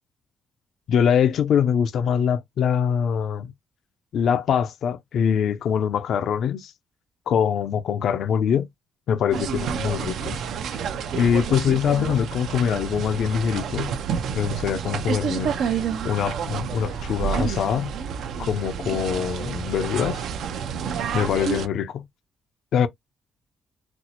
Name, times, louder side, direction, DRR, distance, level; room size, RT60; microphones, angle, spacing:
voice 1, 0.9-3.5 4.1-6.7 7.3-8.7 9.1-10.4 10.7-10.8 11.1-13.9 14.3-17.9 18.4-20.3 21.1-22.1 22.7-22.9, left 8 dB, 70° left, 0.4 m, -23 dB
sound 1, 9.3-21.7, right 7 dB, 75° right, 0.5 m, -29 dB
4.2 x 2.0 x 2.8 m
cardioid pair, 110°, 0 cm